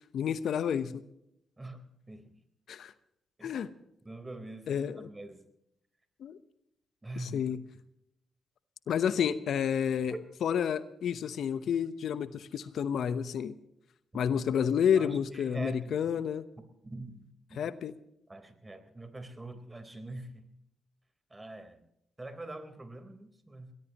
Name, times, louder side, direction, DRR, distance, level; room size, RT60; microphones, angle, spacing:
voice 1, 0.1-0.9 2.7-2.9 3.4-3.7 4.7-5.1 6.2-6.4 7.2-7.6 8.9-10.1 10.4-13.5 14.1-16.4 17.5-17.9, left 8 dB, 70° left, 14 dB, 0.9 m, -30 dB
voice 2, 1.6-2.3 3.4-3.6 4.0-5.5 7.0-7.5 10.1-10.2 14.9-16.2 16.8-17.6 18.3-20.5 21.3-21.8 22.2-23.7, right 2 dB, 25° right, 9 dB, 3.9 m, -44 dB
23.0 x 19.0 x 3.0 m, 0.80 s
hypercardioid pair, 45°, 0 cm